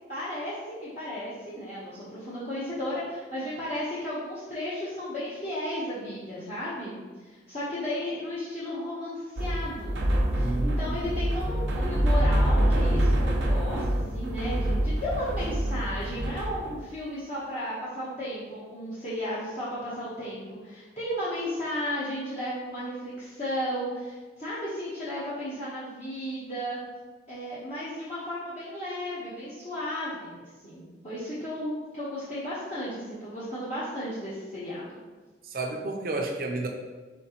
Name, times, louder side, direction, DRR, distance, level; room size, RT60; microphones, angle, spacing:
voice 1, 0.1-10.0 10.3-26.8 27.3-34.9, equal, 40° left, -11 dB, 0.9 m, -34 dB
sound 1, 9.4-16.8, right 1 dB, 90° right, 0.7 m, -26 dB
voice 2, 10.4-11.1 35.4-36.7, right 2 dB, 50° right, 2 dB, 0.6 m, -31 dB
4.2 x 4.1 x 2.9 m, 1.3 s
head